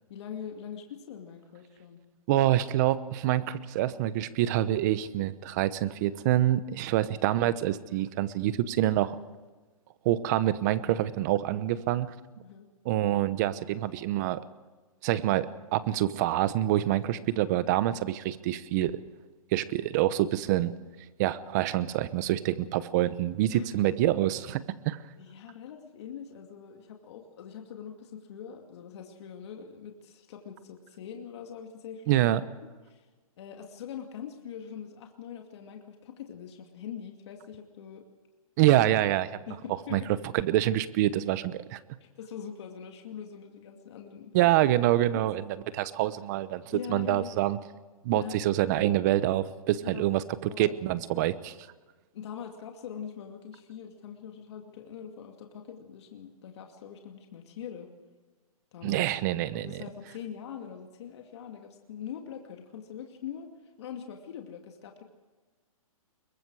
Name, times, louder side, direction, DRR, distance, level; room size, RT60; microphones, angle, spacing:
voice 1, 0.1-2.0 12.4-12.7 23.5-24.0 25.2-32.3 32.9-33.1 33.4-38.0 39.5-40.5 42.0-44.3 45.1-45.2 45.6-45.7 46.7-47.4 48.1-48.7 49.8-50.0 50.5-50.7 52.1-57.9 58.7-59.0 59.5-63.5 63.8-65.0, left 8 dB, 50° left, 3 dB, 2.5 m, -43 dB
voice 2, 2.3-9.2 10.0-12.1 12.8-14.4 15.0-19.0 19.5-20.7 21.2-25.0 32.1-32.4 38.6-39.3 39.9-40.0 40.3-41.8 44.3-46.6 46.9-47.6 48.0-50.2 50.6-51.5 58.8-59.8, right 13 dB, 30° right, 15 dB, 0.9 m, -26 dB
25.0 x 22.5 x 4.9 m, 1.3 s
hypercardioid pair, 160°, 18 cm